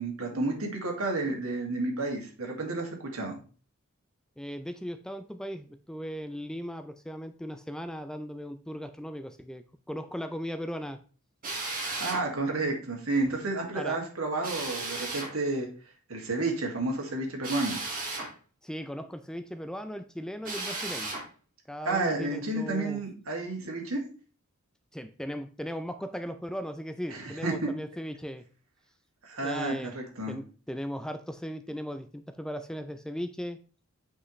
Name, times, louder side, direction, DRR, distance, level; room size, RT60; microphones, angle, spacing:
voice 1, 0.0-3.4 12.0-15.7 16.1-17.8 21.8-24.0 27.1-27.7 29.2-30.3, right 2 dB, 70° right, 1 dB, 2.1 m, -31 dB
voice 2, 4.4-11.0 11.9-12.0 13.7-14.0 18.6-21.2 21.7-23.0 24.9-28.4 29.4-29.9 30.3-33.6, equal, 5° left, 9 dB, 0.4 m, -37 dB
Drill, 11.4-12.2 14.4-15.3 17.4-18.3 20.4-21.2, right 3 dB, 40° right, 2.2 m, -35 dB
8.2 x 5.6 x 3.1 m, 0.38 s
head